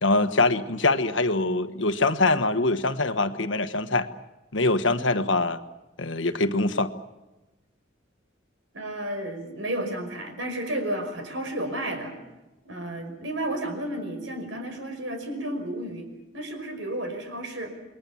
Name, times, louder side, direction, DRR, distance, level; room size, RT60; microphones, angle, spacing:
voice 1, 0.0-4.1 4.5-5.6 6.0-6.9, left 2 dB, 80° left, 9 dB, 1.4 m, -23 dB
voice 2, 8.7-12.1 12.6-16.1 16.3-17.7, right 1 dB, 90° right, 5 dB, 5.6 m, -32 dB
29.0 x 21.5 x 7.3 m, 1.0 s
head